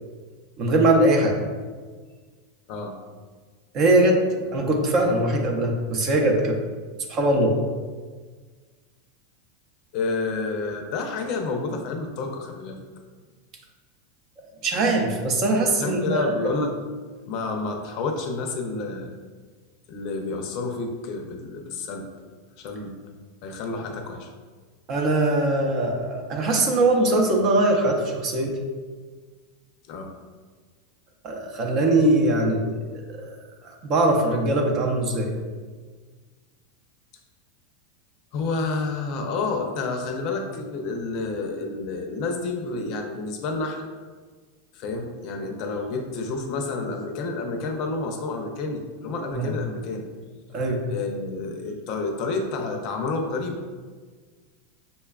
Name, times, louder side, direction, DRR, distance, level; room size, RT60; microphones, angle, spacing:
voice 1, 0.6-1.4 3.7-4.2 4.5-6.6 7.1-7.6 14.6-16.3 24.9-28.6 31.2-32.8 33.1-33.4 33.6-35.3 49.3-49.5 50.5-50.8, right 2 dB, 40° right, 1 dB, 0.6 m, -21 dB
voice 2, 9.9-12.8 15.8-16.8 17.3-19.2 19.9-22.1 22.6-23.0 23.4-24.3 29.9-30.1 38.3-43.9 44.7-50.0 50.5-50.6 50.9-53.6, left 3 dB, 50° left, 3 dB, 0.5 m, -29 dB
5.3 x 2.2 x 2.3 m, 1.5 s
supercardioid pair, 130°, 0 cm